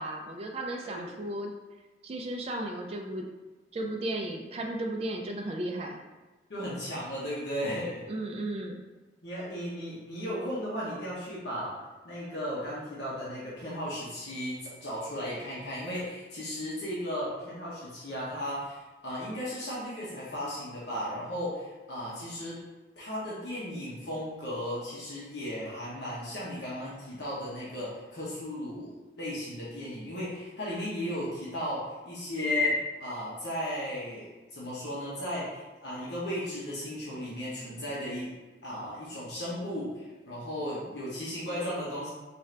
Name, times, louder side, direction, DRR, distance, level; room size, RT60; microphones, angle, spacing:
voice 1, 0.0-1.5 2.0-3.3 3.7-6.0 8.1-8.8, right 1 dB, 35° right, 1 dB, 0.3 m, -34 dB
voice 2, 6.5-8.0 9.2-11.8 12.0-22.6 23.0-38.3 38.6-42.1, left 1 dB, 70° left, -7 dB, 0.9 m, -35 dB
4.3 x 2.5 x 3.2 m, 1.2 s
head